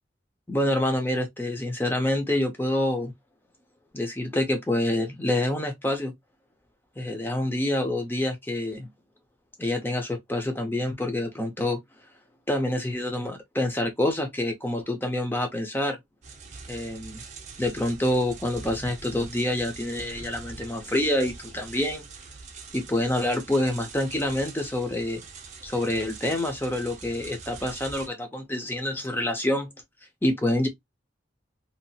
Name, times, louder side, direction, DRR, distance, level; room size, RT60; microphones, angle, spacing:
voice 1, 0.5-3.1 3.9-6.1 7.0-8.9 9.6-11.8 12.5-16.0 16.7-17.2 17.6-22.0 22.7-25.2 25.6-29.7 30.2-30.7, left 1 dB, 10° left, 0.6 m, -27 dB
sound 1, 16.2-28.1, right 4 dB, 40° right, 0.6 m, -43 dB
2.8 x 2.4 x 2.7 m
head